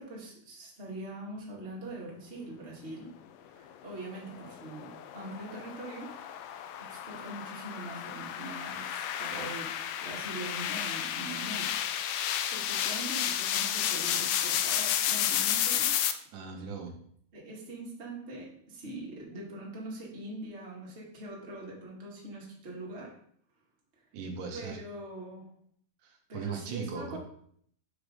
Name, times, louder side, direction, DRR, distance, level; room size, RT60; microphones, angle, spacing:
voice 1, 0.0-3.1 3.5-6.4 6.8-9.7 10.0-11.7 12.4-16.0 17.3-23.1 23.9-24.0 24.5-25.5 26.3-27.2, right 1 dB, 25° right, -5 dB, 1.8 m, -43 dB
sound 1, 4.1-16.1, left 10 dB, 90° left, 2.2 m, -32 dB
voice 2, 16.3-16.9 24.1-24.8 26.0-27.2, right 5 dB, 80° right, 3 dB, 2.4 m, -38 dB
6.2 x 4.9 x 5.1 m, 0.64 s
omnidirectional pair, 3.7 m